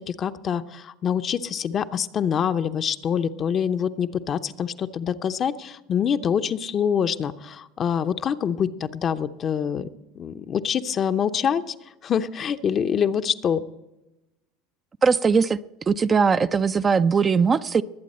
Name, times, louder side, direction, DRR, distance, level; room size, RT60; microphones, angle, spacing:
voice 1, 0.0-9.9 10.1-11.7 12.0-13.6, left 8 dB, 40° left, 10 dB, 0.7 m, -25 dB
voice 2, 15.0-15.6 15.9-17.8, right 5 dB, 30° right, 12 dB, 0.5 m, -20 dB
21.0 x 8.3 x 4.3 m, 0.97 s
hypercardioid pair, 85°, 0 cm